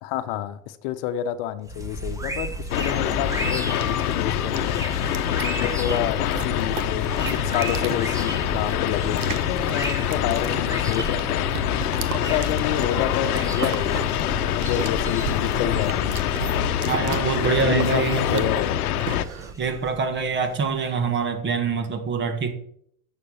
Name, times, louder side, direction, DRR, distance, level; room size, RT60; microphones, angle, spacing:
voice 1, 0.0-4.9 5.4-16.3 17.6-18.9, left 11 dB, 50° left, 1.1 m, -29 dB
sound 1, 1.6-21.1, right 1 dB, 5° right, 1.2 m, -34 dB
sound 2, 2.5-19.5, right 8 dB, 75° right, 1.3 m, -37 dB
sound 3, 2.7-19.3, left 11 dB, 75° left, 0.9 m, -25 dB
voice 2, 16.9-18.5 19.6-22.5, right 5 dB, 25° right, 1.8 m, -25 dB
9.8 x 7.0 x 7.1 m
hypercardioid pair, 115°, 44 cm